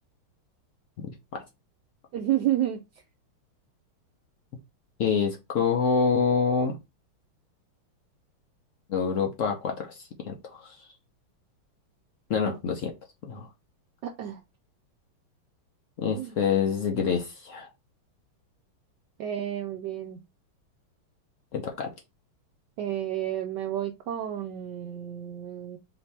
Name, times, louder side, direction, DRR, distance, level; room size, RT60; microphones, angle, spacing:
voice 1, 2.1-2.8 12.5-12.6 14.0-14.4 16.2-16.3 19.2-20.2 22.8-25.8, right 12 dB, 80° right, 1.0 m, -30 dB
voice 2, 5.0-6.8 8.9-10.8 12.3-12.9 13.2-13.5 16.0-17.7 21.5-21.9, left 6 dB, 80° left, 0.7 m, -26 dB
4.7 x 2.8 x 3.3 m
omnidirectional pair, 2.4 m